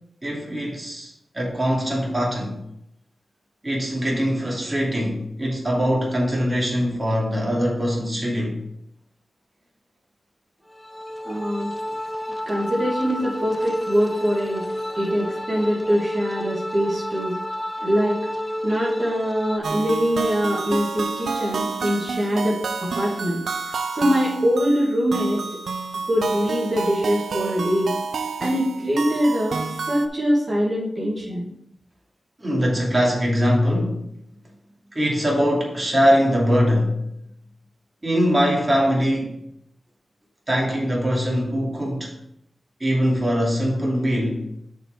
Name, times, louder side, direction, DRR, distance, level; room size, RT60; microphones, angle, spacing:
voice 1, 0.2-2.6 3.6-8.6 32.4-34.0 34.9-37.0 38.0-39.4 40.5-42.1 42.8-44.5, equal, 30° right, -3 dB, 2.6 m, -22 dB
sound 1, 10.7-19.6, left 1 dB, 10° left, 0.7 m, -30 dB
voice 2, 11.2-11.7 12.5-14.6 15.0-17.4 17.8-18.2 18.6-23.4 23.9-25.4 26.1-27.9 28.4-29.6 29.8-31.5, equal, 50° right, -6 dB, 2.3 m, -23 dB
sound 2, 19.6-30.1, right 4 dB, 85° right, 0.5 m, -29 dB
6.5 x 4.5 x 4.7 m, 0.77 s
cardioid pair, 45°, 0 cm